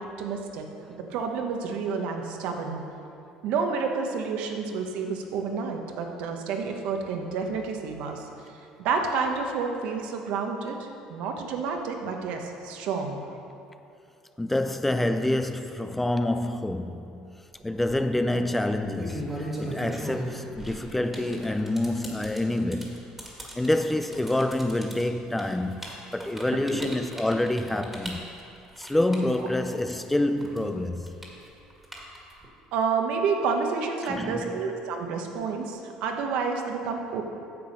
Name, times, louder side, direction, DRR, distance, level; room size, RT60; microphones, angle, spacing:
voice 1, 0.0-2.8 3.4-8.3 8.8-10.8 11.1-13.2 26.7-26.9 32.7-37.2, right 5 dB, 75° right, 1.1 m, -29 dB
voice 2, 14.4-17.4 17.6-23.1 23.6-28.2 28.8-31.1 34.0-34.6, left 1 dB, 10° left, 0.3 m, -27 dB
sound 1, 17.6-17.9 18.7-30.1 30.4-32.5, right 1 dB, 10° right, 1.8 m, -38 dB
9.4 x 7.0 x 5.3 m
cardioid pair, 125°, 2 cm